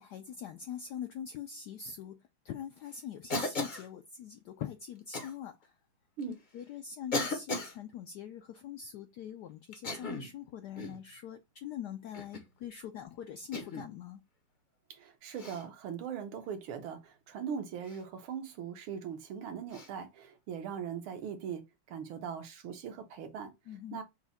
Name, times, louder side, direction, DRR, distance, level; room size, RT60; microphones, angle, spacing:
voice 1, 0.0-2.2 2.4-5.7 6.5-14.2 23.7-24.0, left 8 dB, 80° left, 0.9 m, -43 dB
Cough, 3.3-3.9 5.1-5.3 6.2-6.3 7.1-7.8 9.7-10.3 10.8-11.0 12.1-12.5 13.5-13.9 15.3-15.6 17.8-18.0 19.7-19.9, left 2 dB, 50° left, 0.5 m, -36 dB
voice 2, 14.9-23.5 23.9-24.0, right 7 dB, 80° right, 1.7 m, -40 dB
5.8 x 2.2 x 4.0 m
omnidirectional pair, 2.3 m